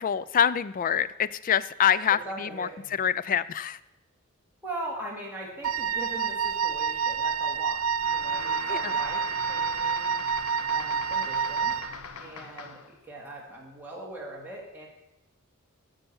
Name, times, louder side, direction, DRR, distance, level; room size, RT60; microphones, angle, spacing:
voice 1, 0.0-2.7 3.0-3.8 8.7-8.9, left 8 dB, 40° left, 17 dB, 0.3 m, -25 dB
voice 2, 2.1-2.9 4.6-10.1 10.7-11.8 12.2-14.9, right 1 dB, 10° right, -3 dB, 2.5 m, -41 dB
Wind instrument woodwind instrument, 5.6-12.0, right 7 dB, 70° right, 0.5 m, -28 dB
sound 1, 8.0-13.0, left 5 dB, 90° left, 0.8 m, -41 dB
10.0 x 6.8 x 7.0 m, 0.96 s
head